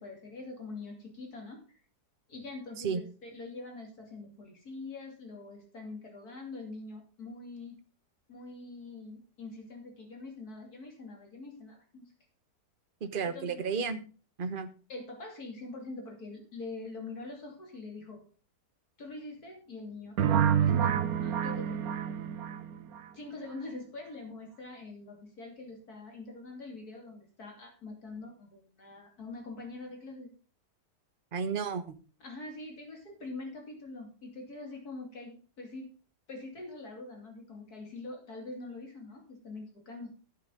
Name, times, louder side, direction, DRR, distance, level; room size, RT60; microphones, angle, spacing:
voice 1, 0.0-1.8 2.3-7.7 8.3-12.1 13.2-13.6 14.9-18.2 19.0-21.8 23.1-30.3 32.2-35.9 36.3-40.1, left 3 dB, 60° left, 2 dB, 3.2 m, -44 dB
voice 2, 13.0-14.0 14.4-14.7 31.3-31.9, right 5 dB, 40° right, 10 dB, 0.9 m, -32 dB
sound 1, 20.2-23.0, right 9 dB, 65° right, 1.1 m, -28 dB
11.0 x 9.1 x 3.8 m, 0.37 s
omnidirectional pair, 1.8 m